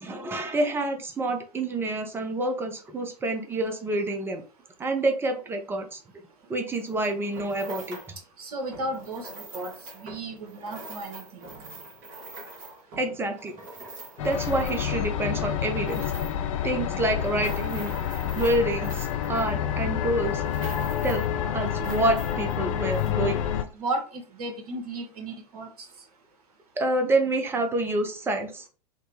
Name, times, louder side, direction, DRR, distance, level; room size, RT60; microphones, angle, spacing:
voice 1, 0.0-4.4 4.8-6.0 6.5-8.0 13.0-13.5 14.2-16.0 16.6-18.0 18.3-20.4 21.0-21.2 21.5-23.5 26.8-28.7, right 1 dB, 10° right, 6 dB, 0.4 m, -27 dB
sound 1, 6.7-8.2 8.7-15.1 15.5-16.5 17.0-19.8 20.2-21.3 21.6-22.6 22.9-23.1, right 2 dB, 40° right, 1.1 m, -43 dB
voice 2, 8.4-11.4 23.7-25.7, right 2 dB, 65° right, 3 dB, 1.0 m, -34 dB
sound 2, 14.2-23.6, left 9 dB, 50° left, 0.4 m, -28 dB
3.6 x 2.0 x 2.8 m, 0.36 s
figure-of-eight pair, 95°, 21 cm